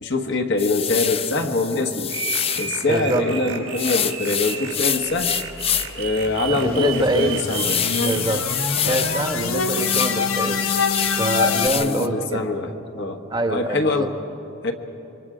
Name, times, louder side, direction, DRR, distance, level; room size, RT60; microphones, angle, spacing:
voice 1, 0.0-2.1 2.6-5.3 6.0-7.8 8.8-8.9 11.7-13.2 13.5-14.1 14.6-14.7, left 3 dB, 55° left, 4 dB, 1.4 m, -24 dB
sound 1, 0.6-2.8 3.8-6.0 6.4-6.5 7.0-10.2 10.5-12.1, left 9 dB, 30° left, 0.5 m, -26 dB
sound 2, 2.1-8.4, right 8 dB, 90° right, 3.5 m, -33 dB
voice 2, 2.9-3.6 6.5-7.4 8.0-8.4 8.8-10.6 11.2-12.4 13.3-14.1, right 1 dB, 20° right, 5 dB, 1.2 m, -24 dB
sound 3, 5.3-11.7, left 5 dB, 85° left, 1.2 m, -26 dB
28.0 x 24.0 x 5.0 m, 2.8 s
head